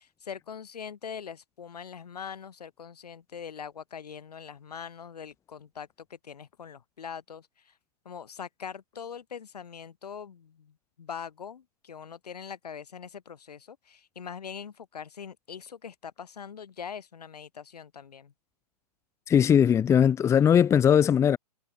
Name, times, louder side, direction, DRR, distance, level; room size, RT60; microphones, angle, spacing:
voice 1, 0.0-7.7 8.1-18.3, left 7 dB, 70° left, 5.1 m, -42 dB
voice 2, 19.3-21.4, left 8 dB, 15° left, 1.5 m, -20 dB
hypercardioid pair, 130°, 21 cm